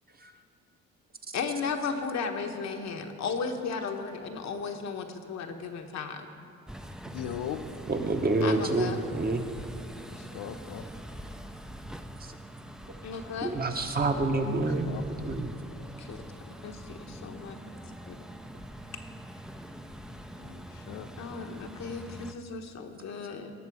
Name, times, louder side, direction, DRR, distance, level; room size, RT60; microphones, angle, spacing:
voice 1, 1.3-6.3 8.4-9.0 13.0-13.5 16.0-16.2 16.6-17.6 18.1-18.2 21.2-23.5, left 5 dB, 65° left, 4 dB, 1.1 m, -35 dB
sound 1, 6.7-22.3, equal, ahead, 0.5 m, -44 dB
voice 2, 7.1-7.6 10.2-10.9 14.9-15.2 20.4-21.1, left 9 dB, 90° left, 8 dB, 0.7 m, -39 dB
voice 3, 7.9-9.5 13.4-14.9 15.2-15.5, right 2 dB, 30° right, 4 dB, 1.1 m, -27 dB
18.0 x 6.8 x 4.8 m, 2.4 s
cardioid pair, 90°, 30 cm